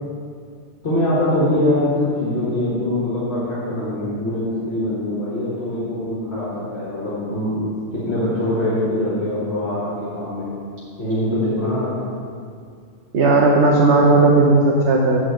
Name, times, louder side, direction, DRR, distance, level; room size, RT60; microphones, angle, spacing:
voice 1, 0.8-10.5 11.0-12.0, left 1 dB, 60° left, -9 dB, 2.0 m, -23 dB
voice 2, 13.1-15.2, right 3 dB, 70° right, -2 dB, 1.2 m, -15 dB
8.2 x 4.6 x 7.4 m, 2.2 s
omnidirectional pair, 1.2 m